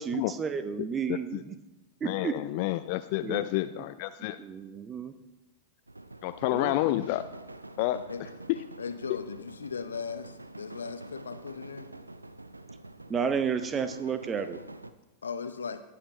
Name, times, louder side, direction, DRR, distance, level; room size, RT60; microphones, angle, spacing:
voice 1, 0.0-1.5 2.0-2.3 3.2-3.4 4.4-5.1 6.5-6.7 13.1-14.6, right 6 dB, 20° right, 11 dB, 0.8 m, -31 dB
voice 2, 1.1-1.4 2.0-4.4 6.2-7.2 7.8-8.0 8.5-8.6, left 16 dB, 45° left, 12 dB, 0.4 m, -29 dB
sound 1, 5.9-14.9, right 2 dB, 85° right, 0.5 m, -46 dB
voice 3, 8.8-11.9 15.2-15.8, left 5 dB, 70° left, 11 dB, 0.7 m, -37 dB
19.0 x 7.7 x 3.2 m, 1.0 s
figure-of-eight pair, 90°, 0 cm